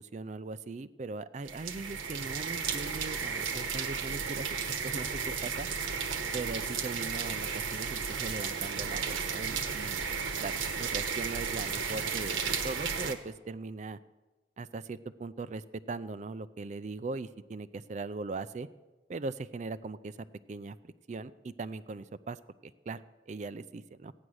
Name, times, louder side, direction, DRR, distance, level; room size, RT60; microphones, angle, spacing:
voice 1, 0.0-5.7 6.3-10.0 10.4-14.0 14.6-18.7 19.1-24.1, right 3 dB, 40° right, 15 dB, 0.4 m, -40 dB
sound 1, 1.4-13.1, right 6 dB, 90° right, 1.1 m, -34 dB
14.5 x 9.7 x 6.3 m, 1.2 s
head